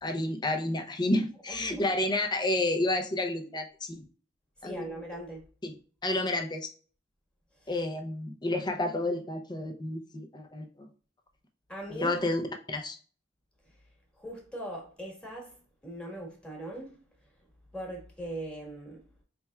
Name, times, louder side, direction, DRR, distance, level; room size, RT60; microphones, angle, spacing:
voice 1, 0.0-4.0 4.6-4.8 5.6-5.7 6.0-6.7 7.7-10.9 11.9-12.4 12.7-13.0, left 2 dB, 25° left, 0.6 m, -30 dB
voice 2, 1.5-1.8 4.6-5.5 7.6-7.7 8.8-9.0 11.7-12.2 13.6-13.8 14.1-17.3 17.7-19.1, right 1 dB, 5° left, 1.4 m, -41 dB
4.2 x 3.4 x 2.3 m
head